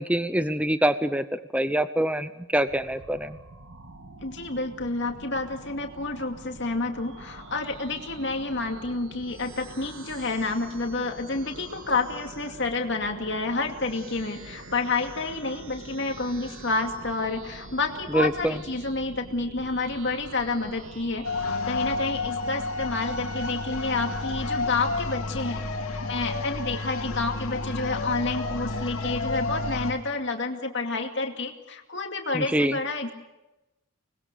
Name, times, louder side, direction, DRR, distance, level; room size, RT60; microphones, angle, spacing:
voice 1, 0.0-3.4 18.1-18.6 32.3-32.8, right 1 dB, 5° right, 12 dB, 0.7 m, -25 dB
sound 1, 2.7-21.5, right 2 dB, 75° right, 1.7 m, -45 dB
voice 2, 4.2-21.3 21.7-25.7 26.1-33.1, left 3 dB, 55° left, 3 dB, 2.5 m, -29 dB
sound 2, 21.2-29.9, left 2 dB, 80° left, 3.0 m, -30 dB
25.0 x 20.5 x 6.9 m, 1.0 s
head